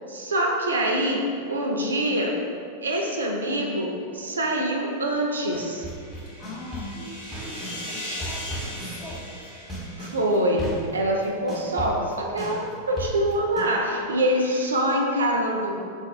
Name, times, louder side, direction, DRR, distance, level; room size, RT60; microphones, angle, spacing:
voice 1, 0.1-2.4 2.8-5.9 10.0-15.7, right 1 dB, 70° right, 1 dB, 0.4 m, -25 dB
sound 1, 5.2-10.8, left 1 dB, 75° left, 1.1 m, -39 dB
sound 2, 5.5-7.8 8.2-13.6, right 1 dB, 5° left, 1.0 m, -36 dB
voice 2, 6.3-9.3, left 2 dB, 35° left, -2 dB, 0.6 m, -41 dB
3.9 x 2.3 x 2.7 m, 2.3 s
figure-of-eight pair, 90°, 0 cm